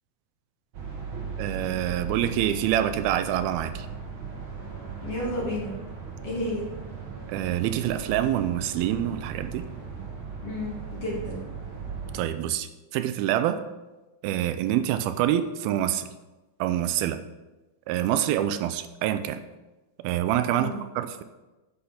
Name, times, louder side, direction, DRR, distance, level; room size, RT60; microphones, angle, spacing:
sound 1, 0.7-12.2, right 5 dB, 50° right, 1.6 m, -37 dB
voice 1, 1.4-3.9 7.3-9.7 12.1-13.6 14.2-16.1 16.6-17.2 17.9-19.4 20.0-21.2, right 11 dB, 85° right, 11 dB, 2.5 m, -26 dB
voice 2, 5.0-5.7 6.2-6.6 10.4-11.4 20.5-20.8, left 1 dB, 45° left, -4 dB, 2.8 m, -31 dB
8.7 x 6.8 x 5.8 m, 1.1 s
omnidirectional pair, 4.3 m